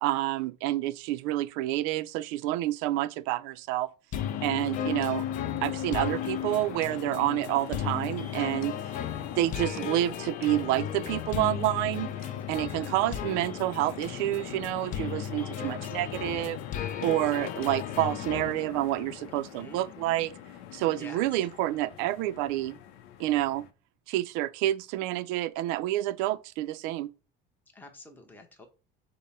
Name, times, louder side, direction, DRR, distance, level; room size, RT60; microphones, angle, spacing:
voice 1, 0.0-3.9 4.4-5.2 5.6-8.7 9.3-16.6 17.0-20.3 20.7-22.8 23.2-23.6 24.1-27.1, right 15 dB, 85° right, 0.4 m, -28 dB
sound 1, 4.1-23.7, left 10 dB, 85° left, 0.6 m, -40 dB
sound 2, 4.1-18.5, left 9 dB, 40° left, 0.5 m, -36 dB
voice 2, 8.9-9.3 12.5-13.1 15.4-16.5 19.3-19.9 20.9-21.3 27.7-28.7, left 2 dB, 10° left, 0.8 m, -50 dB
5.3 x 2.1 x 4.2 m
cardioid pair, 130°, 20 cm